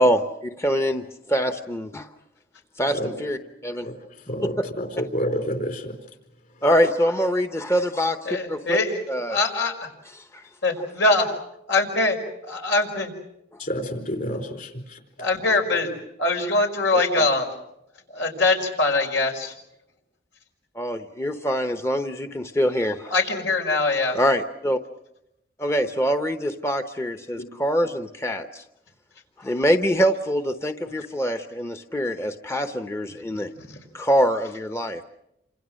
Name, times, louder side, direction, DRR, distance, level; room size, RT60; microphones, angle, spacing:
voice 1, 0.0-2.1 2.8-3.9 4.4-4.6 6.6-8.8 9.1-9.4 10.2-10.4 16.9-17.3 20.7-23.1 24.1-24.8 25.6-28.6 29.4-33.5 33.9-35.0, equal, 15° left, 7 dB, 0.9 m, -24 dB
voice 2, 4.3-6.0 13.6-15.0 27.4-27.5, equal, 50° left, 6 dB, 4.5 m, -29 dB
voice 3, 8.3-9.0 9.3-9.9 10.6-11.3 11.7-12.2 12.4-13.1 15.2-15.9 16.2-17.5 18.1-19.5 23.1-24.2 33.7-33.8, left 2 dB, 85° left, 3 dB, 5.3 m, -22 dB
28.5 x 26.5 x 6.4 m, 0.83 s
head